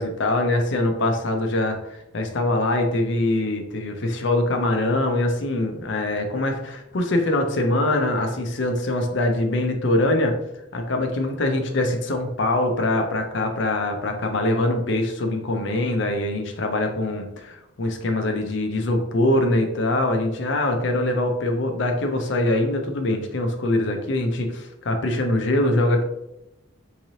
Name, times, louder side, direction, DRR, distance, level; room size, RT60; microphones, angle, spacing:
voice 1, 0.0-10.4 10.7-26.0, left 1 dB, 60° left, 5 dB, 0.6 m, -23 dB
3.7 x 3.1 x 2.7 m, 0.86 s
head